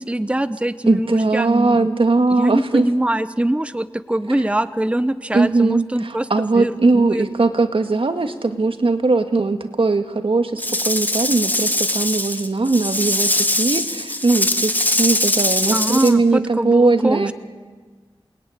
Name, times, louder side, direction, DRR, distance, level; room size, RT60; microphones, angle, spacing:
voice 1, 0.0-1.9 2.4-6.3 6.5-7.2 15.7-17.3, right 1 dB, 10° right, 13 dB, 0.8 m, -23 dB
voice 2, 0.9-2.9 5.3-17.3, right 3 dB, 70° right, 7 dB, 1.9 m, -19 dB
Rattle / Rattle (instrument), 10.6-16.1, left 1 dB, 20° left, 2.0 m, -21 dB
28.5 x 21.0 x 9.8 m, 1.4 s
wide cardioid pair, 70°, 9 cm